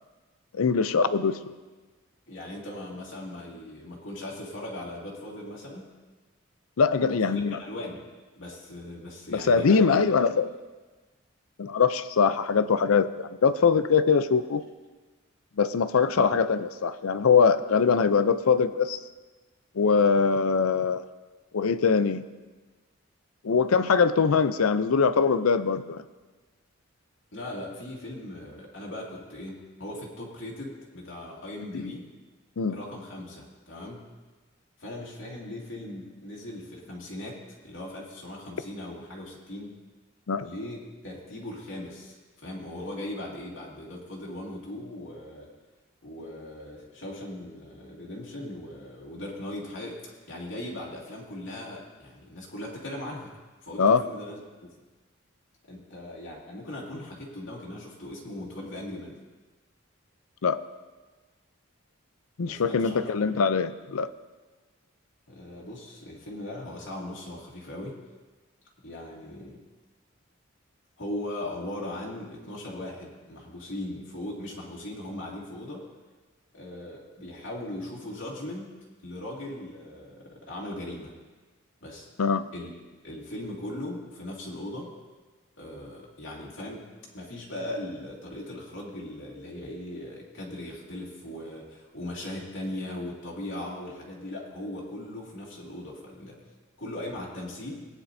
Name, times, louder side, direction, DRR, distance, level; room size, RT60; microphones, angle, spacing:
voice 1, 0.5-1.4 6.8-7.6 9.3-10.5 11.6-14.6 15.6-19.0 19.8-21.0 21.5-22.2 23.4-26.0 32.6-32.8 40.3-40.5 53.8-54.0 60.4-60.6 62.4-64.1 82.2-82.5, left 5 dB, 90° left, 13 dB, 0.5 m, -22 dB
voice 2, 2.3-5.9 7.0-7.2 7.6-8.0 8.4-10.0 16.2-16.3 27.3-32.1 32.7-34.1 34.8-37.4 37.6-39.7 40.4-40.8 41.0-45.5 46.0-50.0 50.3-53.3 53.6-54.7 55.7-59.2 62.4-63.1 65.3-68.0 68.8-69.6 71.0-75.8 76.5-78.7 79.0-81.1 81.8-82.1 82.5-82.7 83.0-84.9 85.6-86.9 87.1-96.4 96.8-97.8, left 1 dB, 65° left, -4 dB, 2.3 m, -39 dB
19.0 x 9.8 x 2.7 m, 1.3 s
head